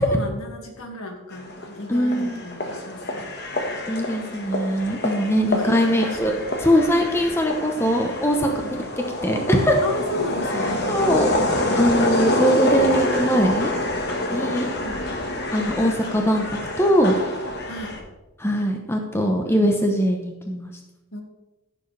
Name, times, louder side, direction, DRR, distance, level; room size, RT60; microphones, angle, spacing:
voice 1, 0.0-3.3 5.4-6.5 8.4-8.7 9.8-10.8 14.3-15.0 17.7-18.0 21.1-21.2, left 1 dB, 75° left, 2 dB, 2.1 m, -34 dB
sound 1, 1.3-18.0, left 1 dB, 50° left, 1.4 m, -27 dB
voice 2, 1.9-2.4 3.9-6.3 6.6-8.5 9.2-9.8 10.9-11.4 11.8-13.7 14.3-14.7 15.5-17.2 18.4-20.7, equal, 10° left, 2 dB, 0.9 m, -21 dB
15.5 x 7.0 x 3.3 m, 1.0 s
head